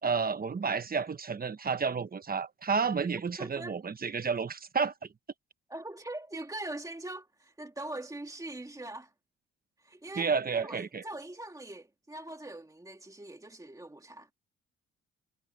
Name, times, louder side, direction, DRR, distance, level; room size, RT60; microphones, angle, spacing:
voice 1, 0.0-5.1 10.2-11.0, right 5 dB, 30° right, 1.2 m, -31 dB
voice 2, 3.4-3.8 5.7-9.1 9.8-14.3, right 2 dB, 10° right, 2.5 m, -42 dB
cardioid pair, 90°, 30 cm